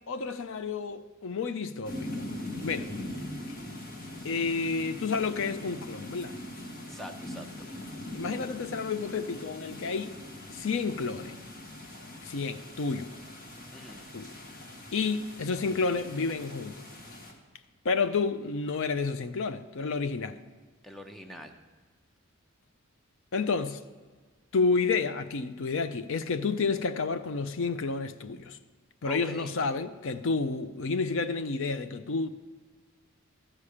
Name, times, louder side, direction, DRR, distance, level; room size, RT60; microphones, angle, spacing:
voice 1, 0.1-2.2 2.6-2.9 4.2-6.3 8.1-10.1 10.5-11.4 12.2-13.1 14.1-14.3 14.9-16.8 17.8-20.4 23.3-23.8 24.5-28.6 29.0-32.3, left 4 dB, 65° left, 0.5 m, -30 dB
sound 1, 1.8-17.3, left 1 dB, 45° left, 1.5 m, -42 dB
voice 2, 6.9-7.5 13.7-14.1 20.8-21.5 29.0-29.5, equal, ahead, 0.8 m, -43 dB
13.5 x 5.0 x 8.4 m
head